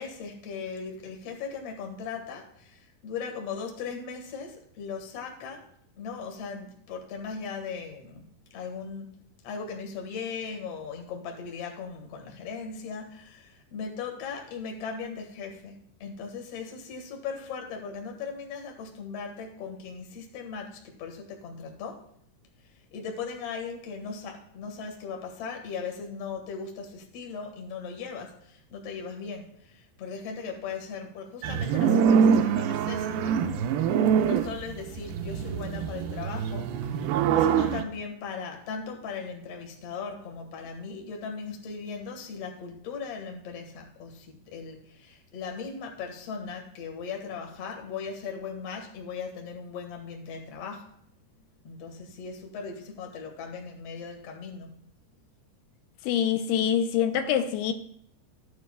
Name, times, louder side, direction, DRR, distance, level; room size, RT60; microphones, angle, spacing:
voice 1, 0.0-5.7 6.0-8.2 8.5-9.2 9.4-22.0 22.9-33.5 34.2-50.9 51.6-54.7, left 5 dB, 50° left, 2.0 m, -38 dB
sound 1, 31.4-37.8, right 7 dB, 80° right, 2.3 m, -24 dB
voice 2, 56.0-57.7, left 9 dB, 85° left, 2.6 m, -25 dB
13.5 x 9.6 x 2.3 m
omnidirectional pair, 4.6 m